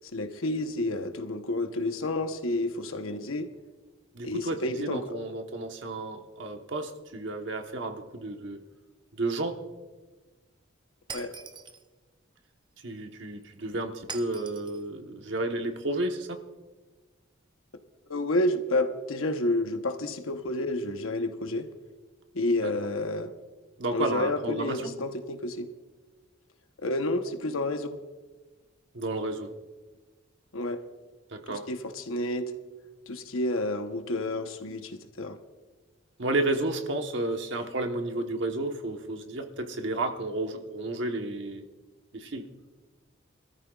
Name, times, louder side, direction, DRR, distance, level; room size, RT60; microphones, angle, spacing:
voice 1, 0.1-3.5 4.2-5.1 11.1-11.3 18.1-21.7 22.3-23.3 23.9-25.7 26.8-28.0 30.5-30.8 31.5-32.5 33.1-35.4, left 1 dB, 90° left, 7 dB, 1.0 m, -30 dB
voice 2, 4.1-8.6 9.1-9.6 12.8-16.4 22.6-22.7 23.8-24.9 28.9-29.5 31.3-31.7 36.2-41.6 42.1-42.4, right 2 dB, 60° right, 5 dB, 1.2 m, -32 dB
Shatter, 11.1-11.9 14.1-14.8, right 5 dB, 20° right, 0.5 m, -42 dB
24.5 x 14.0 x 2.4 m, 1.3 s
head